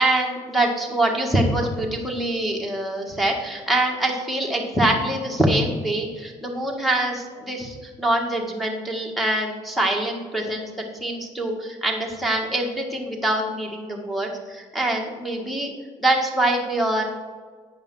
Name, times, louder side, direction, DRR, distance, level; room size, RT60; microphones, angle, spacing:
voice 1, 0.0-10.7 11.0-15.7 16.0-17.0, right 1 dB, ahead, -1 dB, 1.8 m, -24 dB
9.4 x 5.4 x 5.5 m, 1.5 s
cardioid pair, 110°, 13 cm